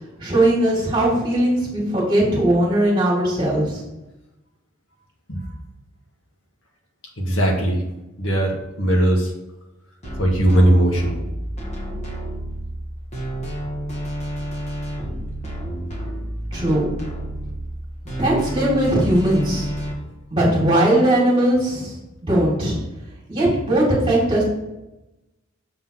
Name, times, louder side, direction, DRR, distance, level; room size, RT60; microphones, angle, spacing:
voice 1, 0.2-3.8 16.5-16.9 18.2-19.7 20.3-21.9 22.2-22.8 23.3-24.4, right 1 dB, 25° right, -5 dB, 2.1 m, -19 dB
voice 2, 7.2-7.8 8.2-9.3 10.2-11.2, right 1 dB, 75° left, 0 dB, 1.8 m, -18 dB
sound 1, 10.0-19.9, equal, 35° left, 1.7 m, -30 dB
7.0 x 4.0 x 5.8 m, 0.97 s
head